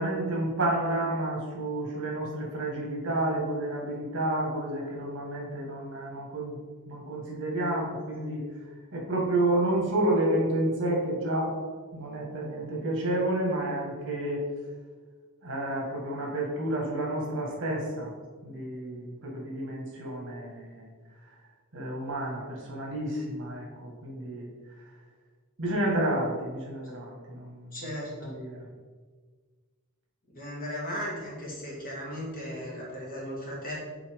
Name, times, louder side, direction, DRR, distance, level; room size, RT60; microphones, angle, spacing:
voice 1, 0.0-6.6 6.9-8.4 8.9-11.5 11.9-14.4 15.4-18.1 18.4-20.9 21.7-24.5 25.6-27.8 28.2-28.7, right 1 dB, 60° right, -2 dB, 1.7 m, -30 dB
voice 2, 27.7-28.1 30.3-33.7, equal, 40° left, -4 dB, 1.9 m, -36 dB
6.9 x 4.3 x 3.6 m, 1.5 s
head